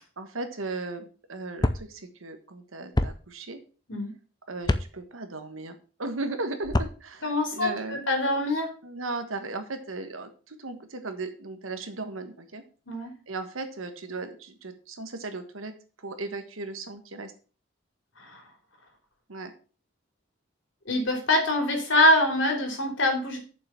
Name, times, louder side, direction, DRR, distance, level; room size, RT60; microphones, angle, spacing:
voice 1, 0.2-3.6 4.5-7.2 7.5-8.1 8.8-12.6 13.3-15.7 16.0-17.3 19.3-19.5, right 3 dB, 90° right, 8 dB, 1.4 m, -36 dB
sound 1, 1.6-1.8 3.0-3.1 4.6-4.9 6.6-6.9, left 1 dB, 20° left, 0.5 m, -24 dB
voice 2, 7.2-8.7 12.9-13.1 18.2-18.4 20.8-23.4, left 1 dB, 70° left, 2 dB, 3.3 m, -24 dB
7.2 x 5.8 x 5.9 m, 0.37 s
head